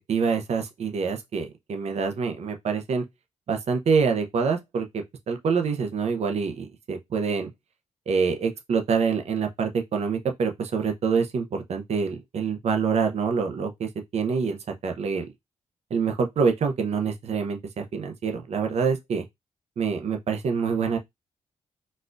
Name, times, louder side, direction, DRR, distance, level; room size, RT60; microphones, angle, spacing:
voice 1, 0.1-3.0 3.5-7.5 8.1-14.6 14.8-15.3 15.9-19.2 19.8-21.0, right 5 dB, 60° right, 0.7 m, -26 dB
4.1 x 2.3 x 2.5 m
wide cardioid pair, 120°, 13 cm